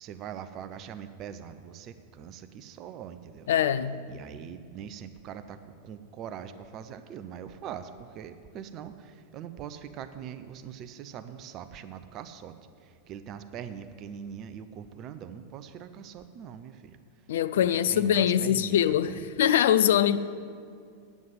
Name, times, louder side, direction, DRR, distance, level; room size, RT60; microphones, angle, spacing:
voice 1, 0.0-3.5 4.1-19.2, right 8 dB, 35° right, 0.5 m, -42 dB
voice 2, 3.5-4.0 17.3-19.1 19.4-20.2, left 10 dB, 60° left, 0.4 m, -23 dB
9.4 x 7.2 x 8.0 m
figure-of-eight pair, 90°, 0 cm